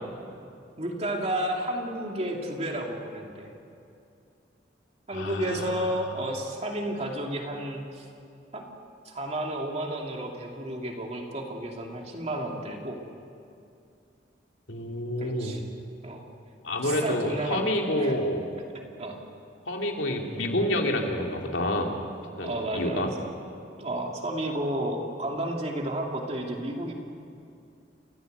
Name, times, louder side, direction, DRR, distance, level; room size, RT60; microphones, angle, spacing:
voice 1, 0.8-3.5 5.1-8.1 8.5-8.6 9.0-13.0 15.2-15.6 16.0-16.3 16.8-18.1 19.0-19.2 22.4-23.2 23.8-26.9, right 1 dB, 35° right, 1 dB, 2.7 m, -32 dB
voice 2, 5.1-5.7 14.7-15.6 16.6-18.4 19.7-21.9 22.4-23.1, left 1 dB, 90° left, 1 dB, 2.8 m, -28 dB
29.5 x 14.0 x 8.1 m, 2.5 s
head